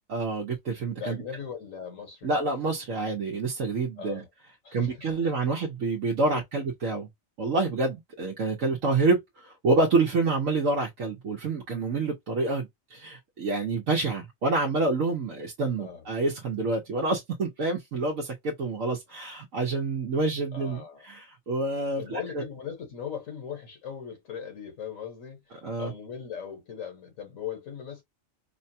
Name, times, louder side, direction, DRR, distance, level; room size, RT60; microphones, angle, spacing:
voice 1, 0.1-1.2 2.2-4.2 4.7-7.1 7.4-22.4 25.6-25.9, right 3 dB, 70° right, 1.2 m, -27 dB
voice 2, 1.0-2.3 4.0-4.3 4.6-5.3 6.3-6.4 9.0-9.2 15.8-16.0 20.5-21.1 22.0-28.0, left 7 dB, 70° left, 1.5 m, -39 dB
5.0 x 2.2 x 2.7 m
omnidirectional pair, 1.4 m